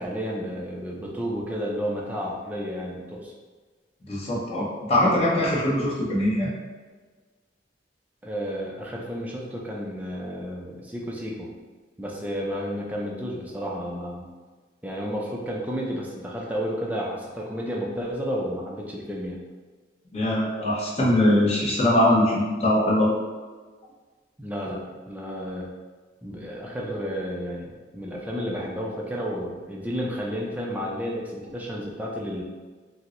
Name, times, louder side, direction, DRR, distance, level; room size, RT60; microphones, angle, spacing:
voice 1, 0.0-3.3 8.2-11.5 12.0-14.3 14.8-19.4 24.4-25.7 26.2-32.4, equal, 10° right, -3 dB, 0.4 m, -31 dB
voice 2, 4.1-6.5 20.1-23.1, left 1 dB, 35° left, -6 dB, 0.8 m, -22 dB
4.3 x 2.0 x 2.5 m, 1.4 s
head